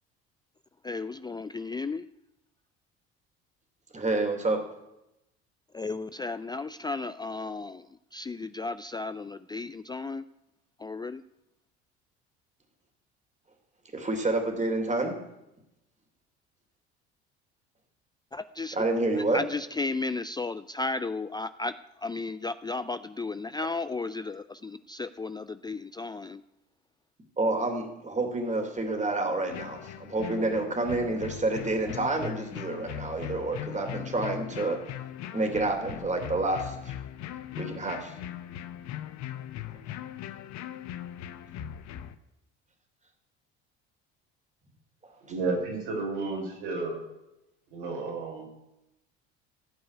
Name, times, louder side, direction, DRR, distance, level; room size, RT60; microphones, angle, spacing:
voice 1, 0.8-2.1 5.7-10.2 10.8-11.2 18.3-18.8 19.1-26.4, left 3 dB, 15° left, 13 dB, 0.4 m, -34 dB
voice 2, 3.9-4.7 13.9-15.2 18.7-19.4 27.4-34.8 35.3-36.7 37.6-38.1, right 2 dB, 20° right, 4 dB, 3.1 m, -28 dB
sound 1, 29.5-42.2, left 11 dB, 55° left, 1.0 m, -40 dB
voice 3, 45.3-47.0 47.7-48.4, right 3 dB, 70° right, -1 dB, 5.4 m, -32 dB
15.5 x 5.5 x 9.7 m, 0.89 s
hypercardioid pair, 60°, 33 cm